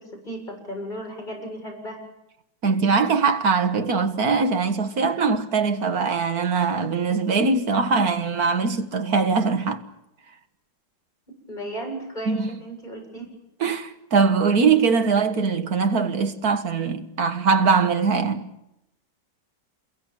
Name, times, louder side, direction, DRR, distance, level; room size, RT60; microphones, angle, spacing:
voice 1, 0.2-2.0 11.5-13.2, right 1 dB, 25° left, 7.7 m, -35 dB
voice 2, 2.6-9.8 12.3-12.5 13.6-18.5, right 5 dB, 55° right, 1.9 m, -22 dB
28.0 x 22.5 x 7.4 m
omnidirectional pair, 2.0 m